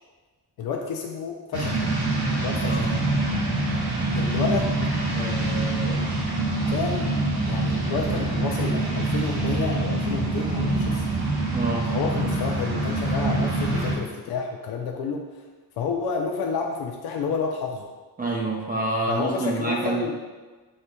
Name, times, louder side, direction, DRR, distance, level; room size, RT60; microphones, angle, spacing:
voice 1, 0.6-1.9 2.4-2.8 4.1-4.7 5.1-6.0 6.7-7.1 7.5-11.1 11.9-15.2 15.8-17.9 19.1-20.1, left 5 dB, 80° left, 1 dB, 0.5 m, -30 dB
sound 1, 1.5-14.0, right 2 dB, 85° right, 1.0 m, -25 dB
voice 2, 2.6-2.9 11.5-11.9 18.2-20.1, right 2 dB, 25° right, -3 dB, 0.6 m, -27 dB
6.4 x 2.8 x 2.2 m, 1.3 s
cardioid pair, 95°, 37 cm